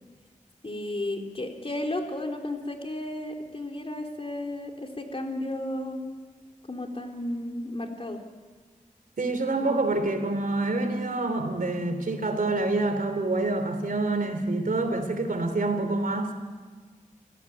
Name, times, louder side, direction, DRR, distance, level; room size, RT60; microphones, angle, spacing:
voice 1, 0.6-6.0 6.7-8.2, left 1 dB, 40° left, 2 dB, 3.7 m, -33 dB
voice 2, 9.2-16.3, right 2 dB, 85° right, 7 dB, 3.2 m, -27 dB
29.0 x 16.0 x 9.0 m, 1.5 s
wide cardioid pair, 55°, 14 cm